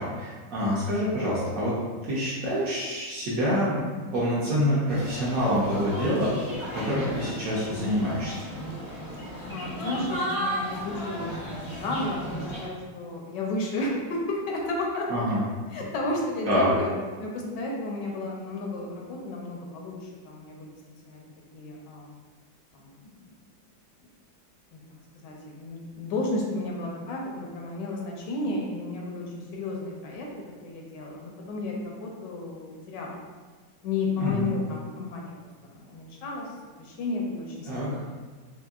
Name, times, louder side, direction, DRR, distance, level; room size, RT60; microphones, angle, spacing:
voice 1, 0.0-1.7 2.0-6.4 6.7-8.4 15.1-15.4 16.4-16.7 34.2-34.5 37.7-37.9, equal, 60° right, -7 dB, 0.9 m, -26 dB
sound 1, 4.9-12.7, equal, 30° left, 0.5 m, -34 dB
voice 2, 9.5-15.1 15.7-16.9 17.2-20.7 21.0-21.2 21.5-22.1 22.7-22.9 24.7-24.8 25.2-29.2 29.5-30.3 30.6-33.2 33.8-35.3 35.6-36.5 36.8-38.1, left 2 dB, 75° left, -1 dB, 1.2 m, -32 dB
4.4 x 2.6 x 2.3 m, 1.4 s
omnidirectional pair, 2.0 m